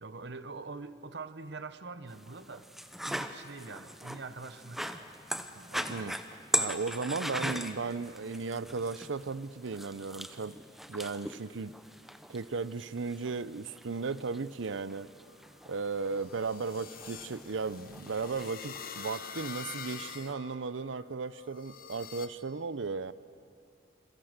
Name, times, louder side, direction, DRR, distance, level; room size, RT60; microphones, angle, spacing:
voice 1, 0.0-2.7 3.1-5.0 5.5-6.0, right 3 dB, 60° right, 13 dB, 0.9 m, -44 dB
sound 1, 2.1-20.3, equal, ahead, 0.7 m, -41 dB
voice 2, 6.6-10.6 10.9-11.7 12.3-15.1 15.7-23.1, right 4 dB, 85° right, 17 dB, 0.6 m, -35 dB
sound 2, 14.8-22.3, left 7 dB, 50° left, 1.2 m, -46 dB
28.0 x 22.5 x 6.6 m, 2.5 s
head